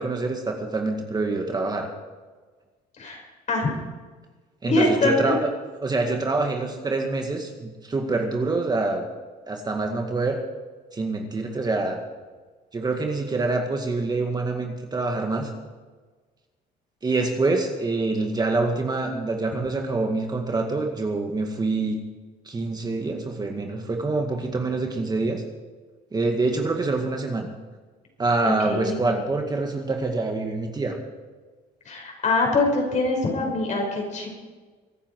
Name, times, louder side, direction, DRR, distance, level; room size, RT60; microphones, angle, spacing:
voice 1, 0.0-1.9 4.6-5.4 5.8-9.1 9.5-10.4 10.9-12.0 12.7-15.5 17.0-22.0 22.5-25.4 26.1-27.5 28.2-31.0, right 3 dB, 25° right, 3 dB, 2.0 m, -26 dB
voice 2, 4.7-5.3 28.4-28.9 31.9-34.3, left 2 dB, 45° left, 1 dB, 5.7 m, -23 dB
24.0 x 9.7 x 4.8 m, 1.4 s
cardioid pair, 110°, 17 cm